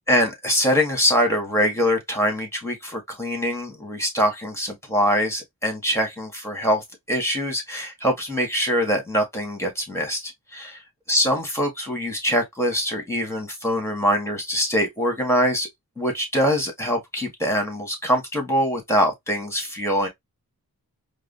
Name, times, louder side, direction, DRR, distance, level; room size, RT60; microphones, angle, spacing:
voice 1, 0.1-10.7 11.1-15.7 16.0-20.1, equal, 5° left, 1.8 m, -23 dB
4.7 x 2.0 x 2.7 m
wide cardioid pair, 55°, 36 cm